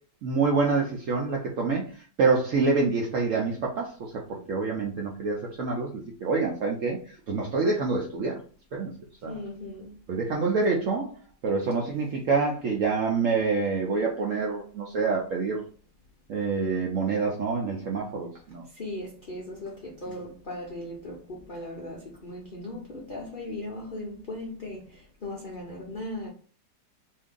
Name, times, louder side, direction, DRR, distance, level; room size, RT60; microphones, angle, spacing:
voice 1, 0.2-1.9 2.2-8.4 8.7-8.9 9.2-9.4 10.1-11.1 11.4-15.6 16.3-18.6 20.1-20.2, right 4 dB, 70° right, 0.7 m, -27 dB
voice 2, 9.3-9.9 18.7-26.3, left 1 dB, 65° left, 0.5 m, -38 dB
2.7 x 2.7 x 3.6 m
omnidirectional pair, 1.9 m